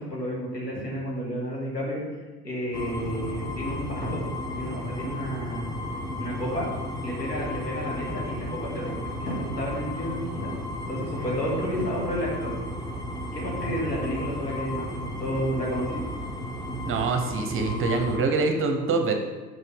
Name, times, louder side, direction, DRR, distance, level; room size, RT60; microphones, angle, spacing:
voice 1, 0.0-4.2 4.5-5.7 6.2-6.7 7.0-10.5 10.8-12.5 13.3-16.0, equal, 85° left, -4 dB, 2.2 m, -31 dB
sound 1, 2.7-18.2, left 1 dB, 10° left, 0.7 m, -34 dB
voice 2, 16.8-19.1, right 4 dB, 25° right, 5 dB, 0.9 m, -25 dB
5.6 x 5.5 x 5.3 m, 1.3 s
figure-of-eight pair, 75°, 48 cm